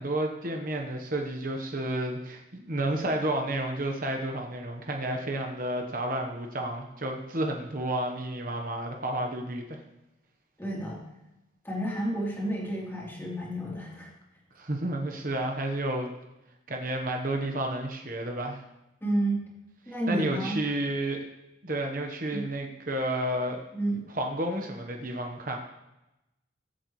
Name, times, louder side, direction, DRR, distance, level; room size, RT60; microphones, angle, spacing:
voice 1, 0.0-9.8 14.5-16.1 16.7-18.6 20.1-21.2 21.6-23.6 24.1-25.6, right 1 dB, 45° right, 2 dB, 1.2 m, -31 dB
voice 2, 10.6-11.0 11.6-14.1 19.0-19.4 19.9-20.6 22.3-22.4 23.7-24.0, right 1 dB, 10° left, -5 dB, 3.5 m, -30 dB
22.0 x 8.3 x 3.2 m, 0.95 s
head